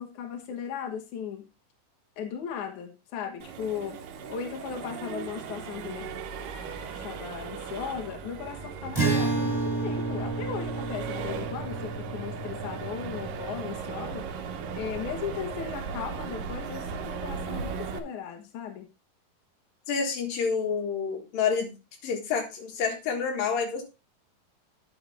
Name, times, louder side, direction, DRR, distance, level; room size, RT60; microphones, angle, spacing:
voice 1, 0.0-1.5 2.2-4.0 4.3-6.1 7.0-14.3 14.7-18.9, left 7 dB, 65° left, 4 dB, 2.6 m, -37 dB
Accelerating revving vroom, 3.4-18.0, right 6 dB, 80° right, 2.6 m, -37 dB
Acoustic guitar, 8.9-14.4, right 3 dB, 5° left, 3.1 m, -31 dB
voice 2, 19.9-21.8 22.0-23.8, left 6 dB, 85° left, 2 dB, 3.5 m, -28 dB
9.6 x 7.1 x 3.4 m, 0.28 s
omnidirectional pair, 3.9 m